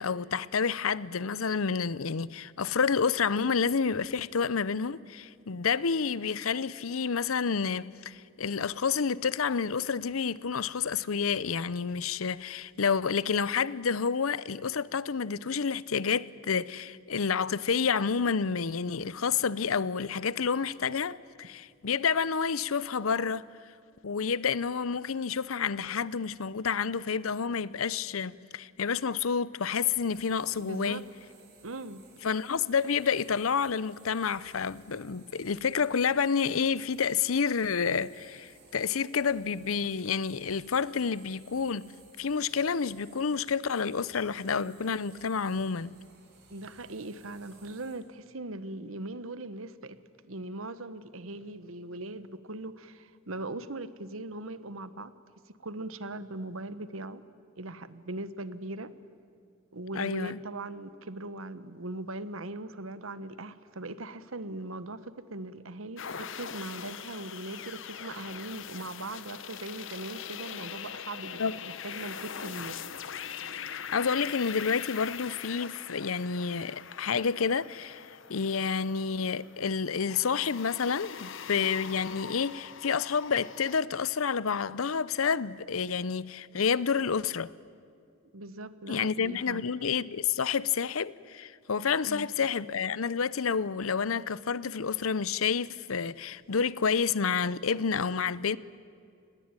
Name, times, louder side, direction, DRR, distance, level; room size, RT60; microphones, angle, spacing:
voice 1, 0.0-23.5 24.0-31.0 32.2-41.9 42.2-45.9 59.9-60.4 71.4-71.6 73.7-87.5 88.9-98.6, left 6 dB, 85° left, 0.7 m, -29 dB
sound 1, 29.7-48.0, right 4 dB, 55° right, 5.9 m, -58 dB
voice 2, 30.6-31.1 31.6-32.0 46.5-50.0 50.3-55.1 55.6-57.2 57.6-58.9 59.7-72.8 88.3-89.7 92.1-92.3, right 2 dB, 75° right, 1.2 m, -40 dB
sound 2, 66.0-83.8, left 8 dB, 65° left, 1.1 m, -42 dB
28.5 x 20.0 x 9.0 m
head